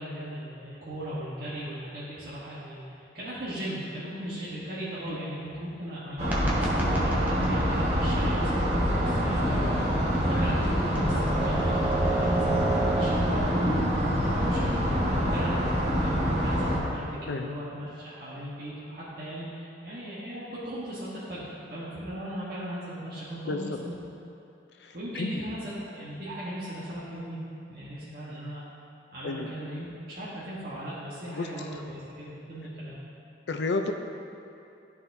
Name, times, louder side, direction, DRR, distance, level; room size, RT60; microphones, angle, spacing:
voice 1, 0.0-8.6 9.0-15.5 16.0-24.0 24.9-27.4 27.7-28.6 29.1-33.0, right 1 dB, 55° right, -10 dB, 1.2 m, -38 dB
sound 1, 6.2-13.2, right 2 dB, 10° right, 0.8 m, -33 dB
sound 2, 6.2-16.8, equal, 40° right, 1.3 m, -26 dB
voice 2, 8.0-8.4 14.9-15.3 17.3-17.5 23.4-23.8 24.8-25.5 29.2-29.5 31.3-31.5 33.5-33.9, left 3 dB, 70° left, 5 dB, 0.5 m, -33 dB
12.0 x 4.2 x 2.7 m, 2.7 s
head